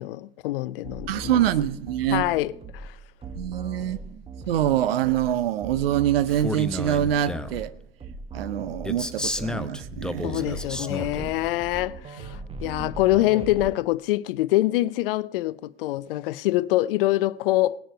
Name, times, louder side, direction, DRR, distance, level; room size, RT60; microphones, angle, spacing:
voice 1, 0.0-1.3 2.1-3.0 10.2-17.8, left 16 dB, 65° left, 0.5 m, -25 dB
sound 1, 0.8-13.7, right 3 dB, 20° right, 1.3 m, -39 dB
voice 2, 1.1-2.2 3.4-4.0 4.5-7.7 8.3-10.6, right 11 dB, 75° right, 0.8 m, -25 dB
Male speech man speaking, 6.3-7.6 8.8-11.3, left 1 dB, 5° left, 0.7 m, -32 dB
18.5 x 10.0 x 4.5 m
hypercardioid pair, 80°, 30 cm